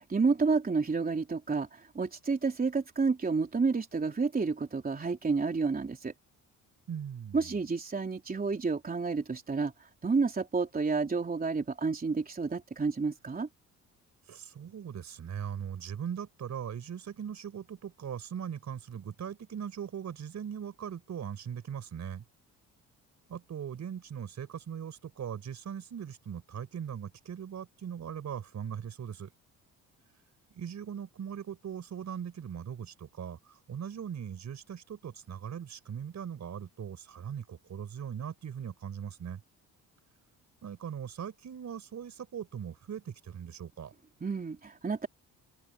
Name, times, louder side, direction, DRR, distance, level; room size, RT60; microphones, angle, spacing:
voice 1, 0.0-6.1 7.3-13.5 44.2-45.1, right 4 dB, 25° right, 3.6 m, -30 dB
voice 2, 6.9-7.5 14.3-22.2 23.3-29.3 30.5-39.4 40.6-43.9, right 8 dB, 55° right, 4.9 m, -40 dB
open air
cardioid pair, 85°, 34 cm